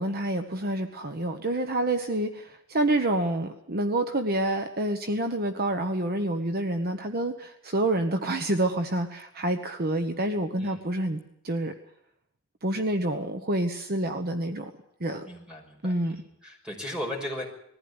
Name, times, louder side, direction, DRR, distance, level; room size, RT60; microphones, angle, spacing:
voice 1, 0.0-11.7 12.6-14.7 15.0-15.3 15.8-16.2, right 1 dB, 50° right, 7 dB, 1.2 m, -28 dB
voice 2, 15.2-17.4, left 1 dB, 5° right, 0 dB, 5.8 m, -37 dB
20.5 x 15.0 x 9.7 m, 0.75 s
head